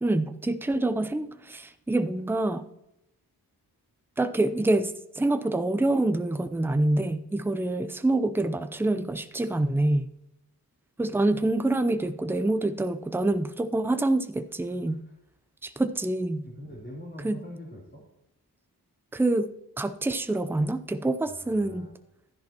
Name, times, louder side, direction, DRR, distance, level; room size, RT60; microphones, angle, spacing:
voice 1, 0.0-2.7 4.2-10.1 11.0-15.0 15.6-16.4 17.2-17.4 19.1-19.5 19.8-21.9, right 2 dB, 5° right, 11 dB, 0.5 m, -26 dB
voice 2, 14.7-15.1 16.4-18.0 21.3-21.9, equal, 30° left, -6 dB, 3.4 m, -44 dB
12.5 x 10.5 x 2.9 m, 0.86 s
cardioid pair, 75°, 38 cm